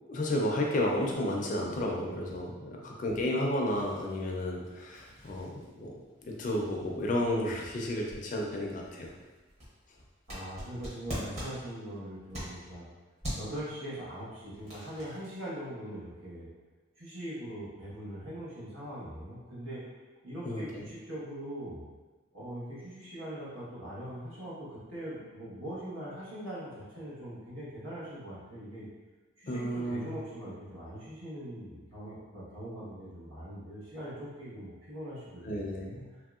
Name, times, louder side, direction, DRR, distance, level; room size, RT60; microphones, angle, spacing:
voice 1, 0.1-5.9 6.3-9.1 20.5-20.9 29.5-30.2 35.4-36.0, left 1 dB, 40° left, -1 dB, 0.4 m, -32 dB
sound 1, 3.6-12.8 13.2-13.6 14.2-15.4, equal, 35° right, 1.0 m, -44 dB
voice 2, 10.3-12.8 13.4-16.5 17.0-19.8 20.2-21.9 22.3-28.9 29.4-35.8 36.1-36.2, right 1 dB, 75° right, -9 dB, 1.2 m, -41 dB
3.0 x 2.7 x 2.3 m, 1.3 s
head